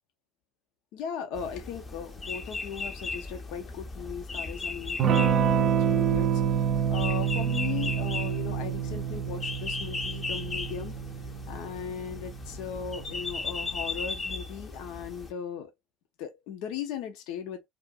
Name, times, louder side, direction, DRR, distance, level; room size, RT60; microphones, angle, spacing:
voice 1, 0.9-11.0 11.5-15.7 16.2-17.7, left 8 dB, 70° left, 0.7 m, -38 dB
sound 1, 1.3-15.3, left 3 dB, 30° left, 0.7 m, -37 dB
Electric guitar / Strum, 5.0-13.3, right 8 dB, 50° right, 0.5 m, -28 dB
2.6 x 2.5 x 2.3 m
hypercardioid pair, 70°, 0 cm